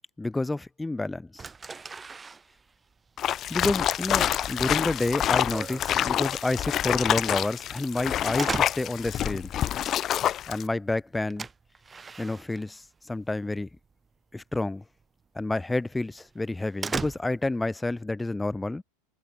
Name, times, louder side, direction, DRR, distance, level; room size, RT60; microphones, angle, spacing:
voice 1, 0.2-1.5 3.5-9.5 10.5-11.5 12.2-13.7 14.3-14.8 15.3-18.8, left 2 dB, 10° left, 1.0 m, -29 dB
sound 1, 1.4-13.3 13.5-14.1 14.4-14.6 15.0-15.1 15.5-15.6 16.0-17.7, right 4 dB, 20° right, 0.9 m, -39 dB
sound 2, 3.2-10.6, left 11 dB, 40° left, 0.5 m, -27 dB
hypercardioid pair, 90°, 0 cm